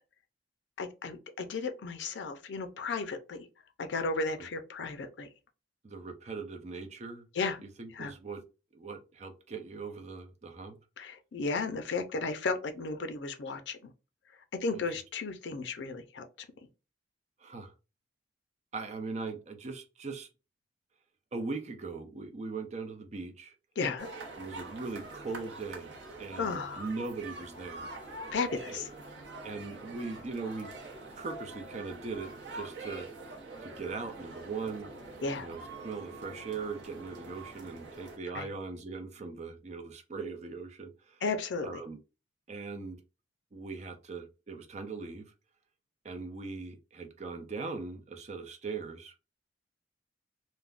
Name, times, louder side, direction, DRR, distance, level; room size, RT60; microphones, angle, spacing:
voice 1, 0.8-3.5 3.8-5.3 7.3-7.6 7.9-8.1 11.0-13.9 14.6-16.5 23.8-24.1 26.4-26.9 28.3-28.9 35.2-35.5 38.3-38.5 41.2-41.8, left 4 dB, 75° left, 0.5 m, -34 dB
voice 2, 5.8-7.3 7.6-8.4 8.7-10.8 14.7-14.8 17.4-17.7 18.7-20.3 21.3-23.5 24.4-28.2 28.7-28.8 29.4-30.7 31.2-33.1 33.6-34.9 35.4-41.2 41.6-42.0 42.5-43.0 43.5-45.3 46.0-49.1, right 4 dB, 40° right, 0.5 m, -40 dB
sound 1, 24.0-38.2, right 2 dB, 85° right, 0.7 m, -45 dB
3.4 x 2.1 x 2.4 m
head